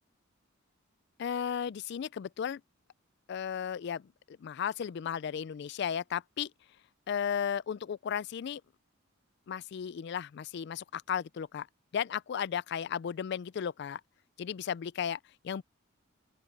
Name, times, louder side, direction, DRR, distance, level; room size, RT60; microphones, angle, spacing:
voice 1, 1.2-2.6 3.3-4.0 4.3-6.5 7.1-8.6 9.5-11.7 11.9-14.0 14.4-15.2 15.4-15.6, left 8 dB, 55° left, 0.3 m, -34 dB
open air
head